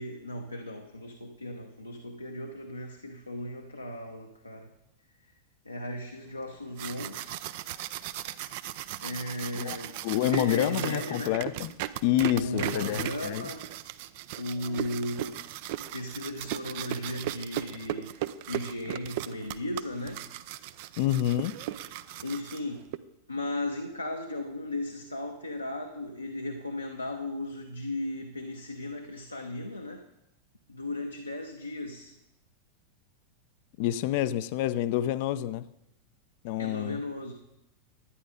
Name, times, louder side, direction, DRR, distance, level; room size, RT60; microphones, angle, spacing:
voice 1, 0.0-4.7 5.6-7.4 9.0-11.4 12.3-13.7 14.4-15.4 15.9-18.2 18.5-20.2 22.2-22.9 23.3-30.0 30.7-32.1 36.6-37.3, left 1 dB, 85° left, 0.9 m, -36 dB
sound 1, 6.5-23.0, right 13 dB, 50° right, 0.5 m, -37 dB
voice 2, 10.0-11.7 12.0-13.5 21.0-21.6 33.8-35.7 36.4-37.0, left 13 dB, 50° left, 0.5 m, -28 dB
11.0 x 9.6 x 5.0 m
figure-of-eight pair, 90°, 0 cm